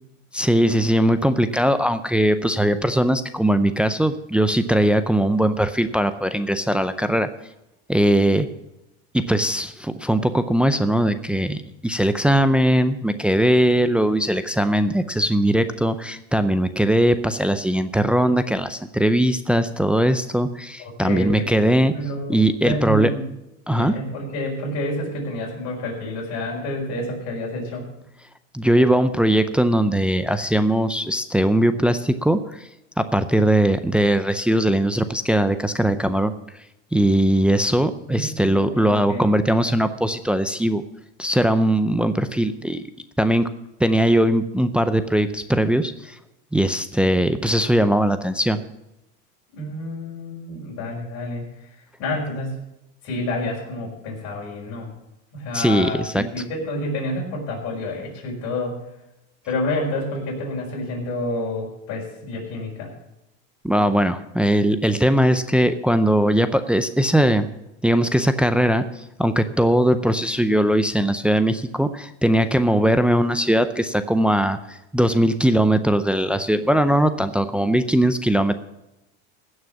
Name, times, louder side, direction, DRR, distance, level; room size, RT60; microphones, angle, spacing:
voice 1, 0.3-7.3 7.9-8.5 9.1-21.9 22.3-23.1 23.7-24.0 28.5-32.7 33.0-36.3 36.9-40.8 41.2-42.8 43.2-43.5 43.8-46.2 46.5-48.6 55.5-56.2 63.6-67.5 67.8-78.6, right 1 dB, 5° right, 10 dB, 0.5 m, -20 dB
voice 2, 20.8-21.6 21.9-23.3 23.7-27.9 38.1-39.3 49.5-52.6 53.0-54.9 55.3-58.8 59.5-62.9, left 1 dB, 50° left, -2 dB, 5.8 m, -29 dB
16.0 x 6.5 x 7.1 m, 0.89 s
supercardioid pair, 130°, 33 cm